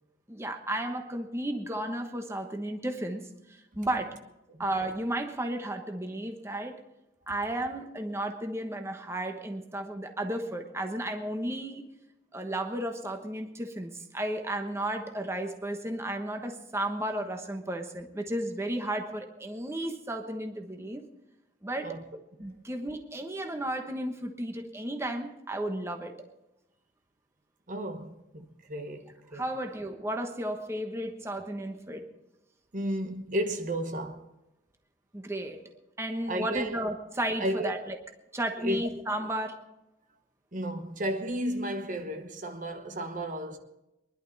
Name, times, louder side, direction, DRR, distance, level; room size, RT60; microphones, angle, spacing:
voice 1, 0.3-4.2 4.6-6.8 7.3-11.8 12.3-21.1 21.6-22.0 22.4-26.3 29.3-32.0 35.1-35.6 36.0-38.0 38.3-39.6, right 1 dB, 15° right, 1.2 m, -33 dB
voice 2, 27.7-29.5 32.7-34.3 36.3-36.8 37.4-37.7 38.6-38.9 40.5-43.6, equal, 50° right, 1.2 m, -33 dB
23.5 x 11.5 x 4.1 m
head